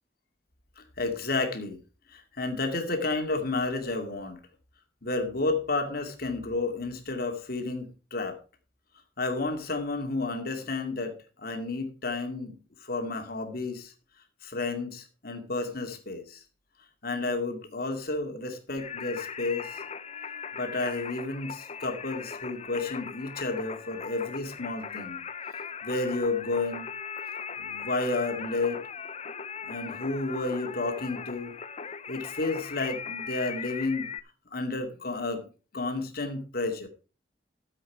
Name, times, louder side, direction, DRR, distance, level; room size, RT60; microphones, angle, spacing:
voice 1, 0.8-1.8 2.1-4.4 5.0-8.4 9.2-13.9 14.4-16.4 17.0-19.8 20.5-25.2 25.8-26.9 27.6-28.9 29.7-31.6 32.1-34.1 34.5-36.9, left 3 dB, 60° left, 5 dB, 2.4 m, -31 dB
Singing, 18.8-34.2, left 6 dB, 40° left, 0.7 m, -39 dB
13.5 x 7.7 x 4.6 m, 0.35 s
head